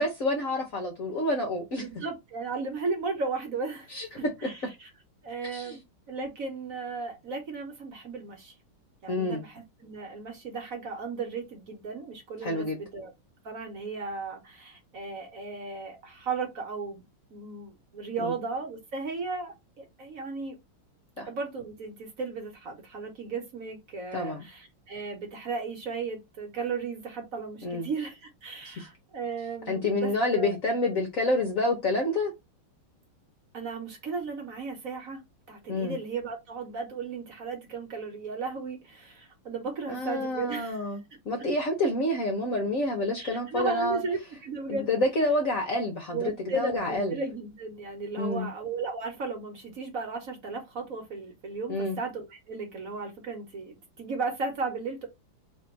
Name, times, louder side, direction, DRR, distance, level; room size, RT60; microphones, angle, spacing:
voice 1, 0.0-1.8 3.9-4.1 4.4-4.5 5.4-5.8 9.1-9.4 12.4-12.8 18.2-18.3 21.2-21.3 24.1-24.4 27.6-27.9 29.7-32.3 35.7-36.0 39.9-41.0 41.2-44.0 44.7-47.1 48.2-48.5 51.7-52.0, left 1 dB, 55° left, 1.0 m, -28 dB
voice 2, 1.8-4.9 5.2-5.8 6.1-8.5 9.0-13.1 13.4-17.0 17.3-20.6 21.3-30.5 33.5-35.2 35.5-40.8 43.2-44.9 46.1-55.1, right 4 dB, 50° right, 1.3 m, -35 dB
3.4 x 2.5 x 4.5 m
omnidirectional pair, 2.3 m